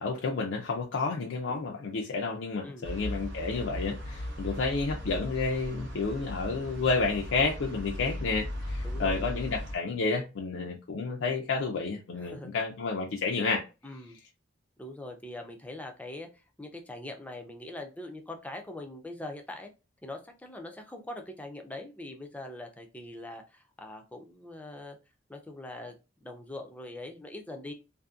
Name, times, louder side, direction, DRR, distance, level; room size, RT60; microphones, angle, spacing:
voice 1, 0.0-13.6, left 4 dB, 90° left, 0.5 m, -30 dB
sound 1, 2.8-9.8, left 1 dB, 75° right, 0.7 m, -37 dB
voice 2, 8.8-9.2 12.2-12.5 13.8-14.2 14.8-19.7 20.0-25.0 25.3-27.7, left 1 dB, 10° left, 0.4 m, -42 dB
2.6 x 2.6 x 2.4 m
head